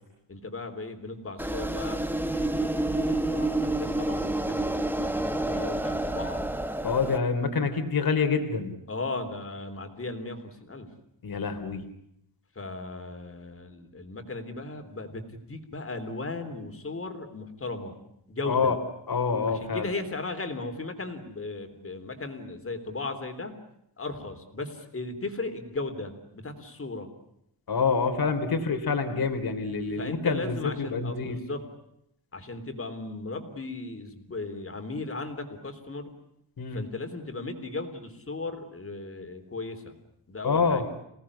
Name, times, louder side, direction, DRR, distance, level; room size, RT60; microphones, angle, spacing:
voice 1, 0.3-6.4 8.9-10.9 12.6-17.9 18.3-18.8 19.5-23.5 24.0-27.1 30.0-31.7 32.3-36.1 36.7-40.0 40.3-40.9, left 3 dB, 30° left, 6 dB, 3.6 m, -36 dB
sound 1, 1.4-7.2, right 1 dB, 5° right, 1.3 m, -29 dB
voice 2, 6.8-8.7 11.2-11.8 18.5-18.8 19.1-19.9 27.7-31.4 36.6-36.8 40.4-40.8, left 5 dB, 50° left, 8 dB, 3.2 m, -26 dB
28.5 x 18.5 x 9.8 m, 0.79 s
wide cardioid pair, 145°, 44 cm